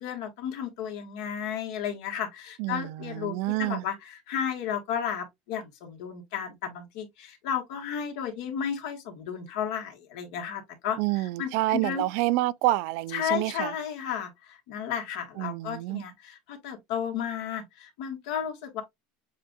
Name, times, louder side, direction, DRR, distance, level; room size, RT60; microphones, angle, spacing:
voice 1, 0.0-12.0 13.1-18.8, left 8 dB, 75° left, 1.7 m, -33 dB
voice 2, 2.6-3.8 11.0-13.7 15.4-16.0, right 18 dB, 65° right, 0.3 m, -28 dB
7.1 x 2.5 x 2.3 m
cardioid pair, 150°, 4 cm